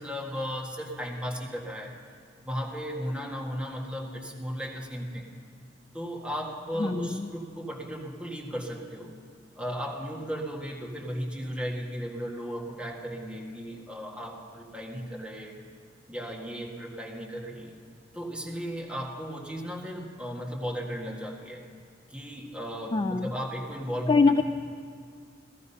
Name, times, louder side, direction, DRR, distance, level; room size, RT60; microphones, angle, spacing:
voice 1, 0.0-1.9 2.4-5.3 5.9-9.1 9.5-15.6 16.1-17.7 18.1-21.6 22.1-24.1, equal, 5° right, -2 dB, 1.8 m, -35 dB
voice 2, 6.8-7.3 22.9-23.3 24.1-24.4, left 4 dB, 25° left, 8 dB, 0.3 m, -23 dB
15.0 x 14.0 x 5.6 m, 2.1 s
head